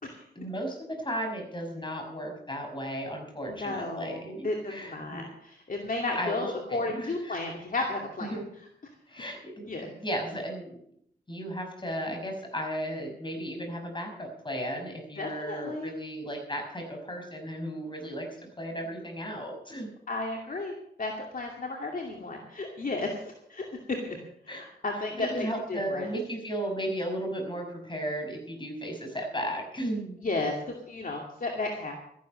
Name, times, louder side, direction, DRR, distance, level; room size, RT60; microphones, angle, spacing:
voice 1, 0.4-5.2 6.1-7.4 8.3-8.4 9.1-9.7 10.0-10.8 11.3-18.3 18.6-19.9 24.5-24.6 25.1-30.3, equal, 25° left, 3 dB, 5.8 m, -35 dB
voice 2, 3.5-8.3 9.7-9.9 15.2-15.9 20.1-23.7 24.0-24.2 24.4-26.1 30.2-31.9, left 2 dB, 50° left, 1 dB, 2.5 m, -33 dB
13.5 x 11.5 x 6.4 m, 0.72 s
cardioid pair, 70°, 18 cm